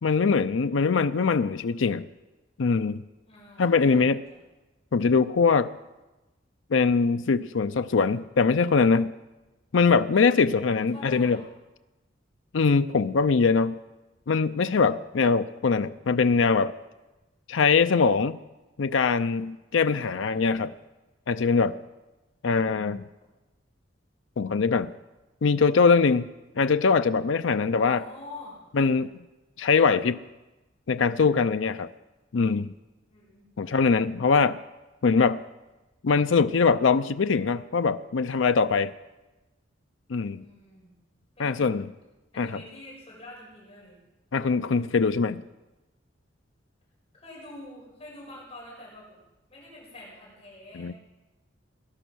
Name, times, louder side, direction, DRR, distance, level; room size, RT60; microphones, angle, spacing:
voice 1, 0.0-2.1 2.6-3.0 3.6-4.2 4.9-5.7 6.7-9.1 9.7-11.4 12.5-13.8 14.3-16.7 17.5-18.4 18.8-20.7 21.3-21.8 22.4-23.1 24.4-24.9 25.4-26.3 26.6-28.0 28.7-29.1 29.6-30.2 30.9-31.9 32.3-32.7 33.6-34.6 35.0-35.4 36.0-38.9 40.1-40.4 41.4-41.9 42.4-42.6 44.3-45.4 50.7-50.9, left 5 dB, 75° left, 11 dB, 0.5 m, -22 dB
voice 2, 3.2-4.4 10.5-10.6 10.9-11.4 19.9-20.4 27.8-28.6 33.1-33.7 40.3-40.9 41.4-41.7 42.3-44.0 47.1-49.1 49.5-50.9, left 2 dB, 30° left, -5 dB, 6.3 m, -46 dB
19.5 x 11.0 x 6.2 m, 1.1 s
head